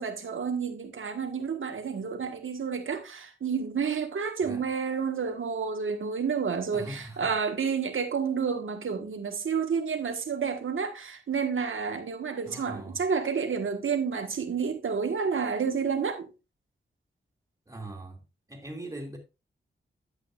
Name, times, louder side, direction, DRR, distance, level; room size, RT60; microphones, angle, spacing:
voice 1, 0.0-16.3, right 6 dB, 85° right, 1.5 m, -30 dB
voice 2, 6.7-7.3 12.4-13.0 17.7-18.2 18.5-19.2, right 1 dB, 15° right, 2.4 m, -41 dB
11.0 x 8.3 x 2.4 m
wide cardioid pair, 115°, 20 cm